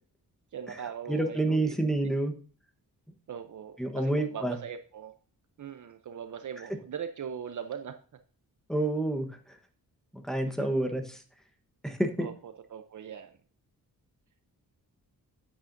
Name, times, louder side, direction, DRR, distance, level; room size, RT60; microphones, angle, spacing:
voice 1, 0.5-1.8 3.3-5.1 5.6-8.0 10.4-10.7 12.2-13.4, right 8 dB, 55° right, 8 dB, 0.7 m, -40 dB
voice 2, 1.1-2.3 3.8-4.6 8.7-9.6 10.1-11.2 11.8-12.3, right 1 dB, ahead, 4 dB, 1.1 m, -28 dB
9.2 x 8.8 x 2.6 m, 0.41 s
wide cardioid pair, 155°, 37 cm